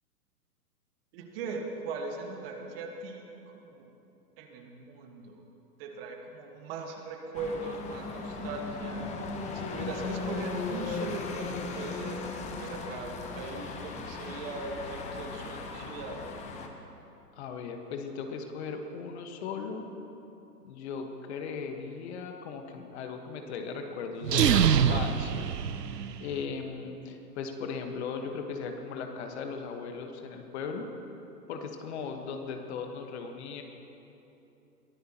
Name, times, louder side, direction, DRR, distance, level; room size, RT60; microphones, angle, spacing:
voice 1, 1.1-3.9 4.4-5.4 5.8-9.1 9.5-16.2, right 3 dB, 35° right, 2 dB, 1.6 m, -39 dB
sound 1, 7.3-16.7, left 4 dB, 15° left, 0.8 m, -37 dB
voice 2, 17.3-19.9 20.6-25.5 26.2-30.9 31.5-33.6, left 5 dB, 40° left, 4 dB, 1.4 m, -37 dB
sound 2, 24.2-26.4, right 8 dB, 80° right, 0.7 m, -25 dB
22.5 x 15.0 x 3.0 m, 2.9 s
figure-of-eight pair, 115°, 48 cm